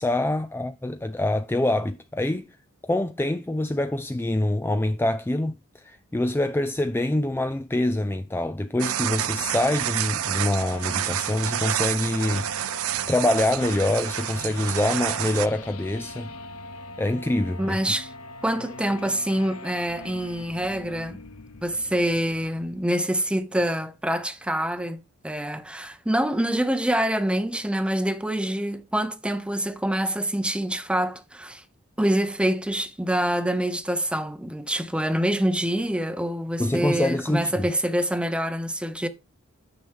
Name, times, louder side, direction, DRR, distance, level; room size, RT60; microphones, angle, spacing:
voice 1, 0.0-2.5 2.8-16.3 17.0-17.8 36.6-37.7, left 1 dB, 10° left, 0.4 m, -25 dB
sound 1, 8.8-15.5, right 12 dB, 70° right, 0.4 m, -29 dB
sound 2, 9.0-23.0, left 2 dB, 80° left, 0.9 m, -42 dB
voice 2, 17.6-18.1 18.4-21.2 21.6-31.6 32.0-39.1, right 1 dB, 5° right, 0.8 m, -26 dB
9.5 x 6.0 x 3.6 m
head